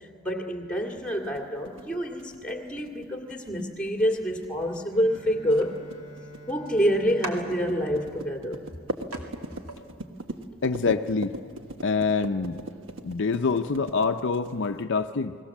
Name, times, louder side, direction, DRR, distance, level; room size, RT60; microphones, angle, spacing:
voice 1, 0.2-5.7 6.5-8.6, equal, 5° left, 2 dB, 2.2 m, -27 dB
sound 1, 1.1-14.8, right 1 dB, 60° right, 1.4 m, -40 dB
Bowed string instrument, 4.9-9.7, right 2 dB, 20° right, 3.8 m, -49 dB
sound 2, 5.5-5.7 6.7-6.8 7.2-8.3 8.7-8.8 9.1-9.2 9.5-9.8, right 2 dB, 90° right, 2.6 m, -40 dB
voice 2, 10.6-11.4 11.8-12.6 13.0-15.4, left 4 dB, 55° left, 7 dB, 0.6 m, -26 dB
29.5 x 20.0 x 7.2 m, 2.2 s
head